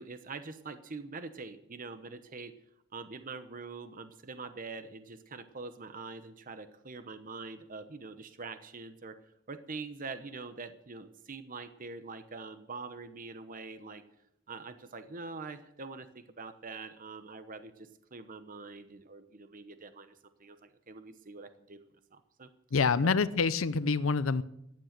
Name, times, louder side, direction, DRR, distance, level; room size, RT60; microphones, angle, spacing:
voice 1, 0.0-2.5 2.9-9.2 9.5-14.0 14.5-21.8 22.1-22.5 23.0-23.1, right 4 dB, 45° right, 10 dB, 0.9 m, -44 dB
voice 2, 22.7-24.4, left 4 dB, 85° left, 15 dB, 0.6 m, -26 dB
15.0 x 10.5 x 6.7 m, 0.80 s
head